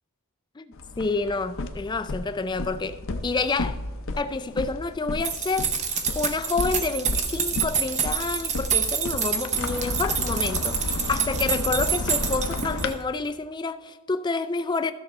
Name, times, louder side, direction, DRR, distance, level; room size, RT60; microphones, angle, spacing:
voice 1, 0.6-3.8 4.2-14.9, left 3 dB, 20° left, 0.4 m, -29 dB
sound 1, 0.7-12.9, left 2 dB, 60° left, 0.7 m, -33 dB
sound 2, 5.2-13.0, right 7 dB, 30° right, 0.8 m, -28 dB
13.5 x 6.4 x 4.2 m
head